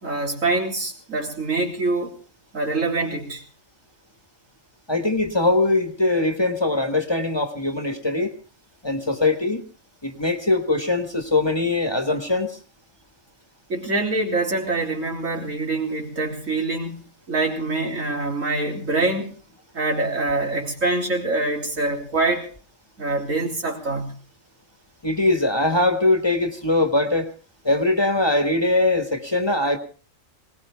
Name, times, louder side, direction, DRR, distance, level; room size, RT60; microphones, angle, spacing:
voice 1, 0.0-2.1 2.5-3.4 13.7-19.3 19.7-22.5 23.0-24.2, right 2 dB, 90° right, 1 dB, 3.8 m, -25 dB
voice 2, 4.9-8.4 8.8-9.6 10.0-12.6 25.0-27.3 27.6-29.8, left 2 dB, 20° left, 6 dB, 1.5 m, -21 dB
20.5 x 19.0 x 3.5 m, 0.40 s
omnidirectional pair, 1.3 m